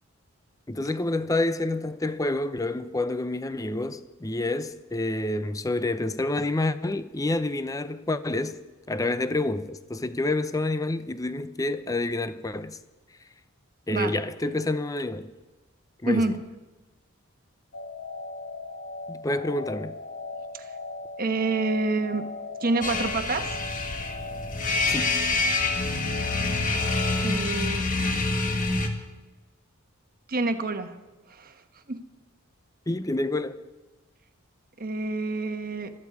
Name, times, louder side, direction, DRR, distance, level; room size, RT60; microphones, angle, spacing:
voice 1, 0.7-8.6 8.9-12.8 13.9-15.3 16.0-16.4 19.1-20.0 24.9-25.2 32.9-33.6, left 2 dB, 15° left, 0.6 m, -28 dB
voice 2, 16.1-16.4 20.5-20.7 21.2-22.2 22.6-23.6 27.2-27.9 30.3-31.0 31.3-31.6 31.9-32.0 34.8-35.9, right 3 dB, 40° right, 1.2 m, -27 dB
sound 1, 17.7-27.3, left 2 dB, 65° left, 1.2 m, -38 dB
sound 2, 22.8-28.9, left 3 dB, 40° left, 1.8 m, -26 dB
21.5 x 14.0 x 4.8 m
head